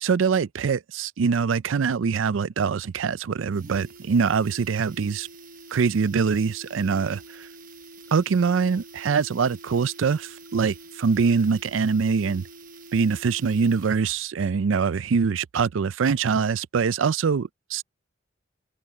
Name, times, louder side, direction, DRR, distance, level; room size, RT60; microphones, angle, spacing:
voice 1, 0.0-5.3 5.7-7.2 8.1-12.4 12.9-17.8, right 5 dB, 75° right, 0.4 m, -23 dB
sound 1, 2.6-2.7 3.0-3.1 3.4-14.2 14.5-14.6, right 2 dB, 45° right, 1.1 m, -46 dB
open air
head